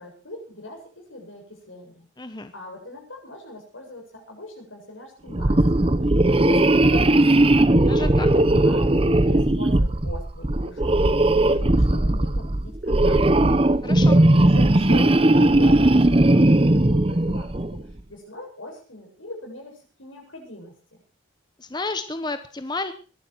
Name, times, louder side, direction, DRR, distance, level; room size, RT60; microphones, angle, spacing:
voice 1, 0.0-7.7 8.3-13.2 14.1-17.8 18.1-21.0, left 1 dB, 80° left, 2 dB, 7.7 m, -41 dB
voice 2, 2.2-2.5 7.9-8.3 13.8-14.2 21.6-22.9, left 3 dB, 20° left, 9 dB, 0.9 m, -31 dB
sound 1, 5.3-17.8, right 1 dB, 30° right, 0.8 m, -18 dB
21.5 x 12.0 x 4.6 m, 0.37 s
head